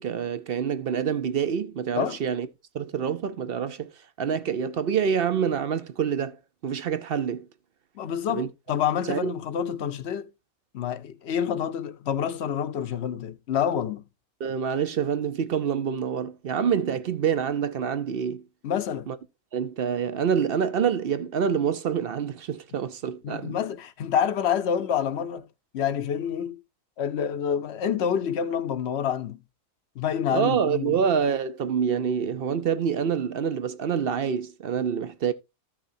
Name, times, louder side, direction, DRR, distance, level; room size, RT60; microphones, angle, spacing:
voice 1, 0.0-2.5 2.7-3.9 4.2-6.4 6.6-7.5 8.3-8.5 9.1-9.3 14.4-18.4 19.1-19.2 19.5-23.6 30.3-35.3, right 7 dB, 55° right, 0.7 m, -26 dB
voice 2, 8.0-10.3 10.7-14.0 18.6-19.1 23.2-25.5 25.7-26.6 27.0-29.4 30.0-31.0, left 8 dB, 55° left, 0.9 m, -27 dB
14.0 x 6.1 x 2.6 m
omnidirectional pair, 1.4 m